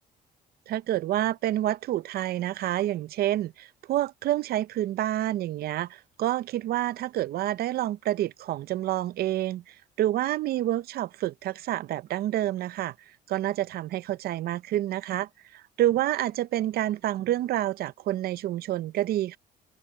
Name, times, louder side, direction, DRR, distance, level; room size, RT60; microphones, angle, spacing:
voice 1, 0.7-12.9 13.3-19.4, right 13 dB, 65° right, 0.7 m, -28 dB
cardioid pair, 110°, 17 cm